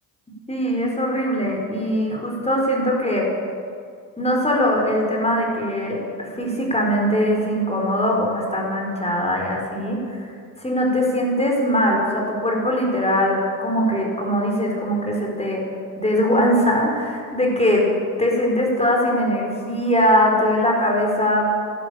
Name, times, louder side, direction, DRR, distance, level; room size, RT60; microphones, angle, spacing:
voice 1, 0.5-3.3 4.2-10.3 10.6-15.6 16.0-17.9 18.2-21.5, equal, 15° left, -1 dB, 4.8 m, -21 dB
12.5 x 12.0 x 8.8 m, 2.3 s
figure-of-eight pair, 50°, 46 cm